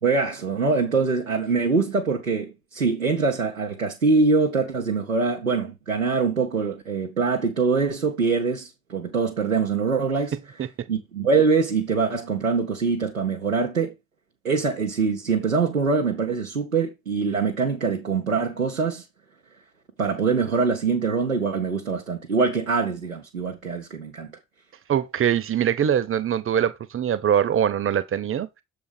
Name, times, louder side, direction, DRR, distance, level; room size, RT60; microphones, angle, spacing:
voice 1, 0.0-10.3 10.9-13.9 14.4-19.0 20.0-24.3, right 4 dB, 90° right, 0.7 m, -23 dB
voice 2, 24.9-28.6, right 9 dB, 30° right, 0.9 m, -23 dB
7.0 x 4.0 x 5.0 m
figure-of-eight pair, 45°, 40 cm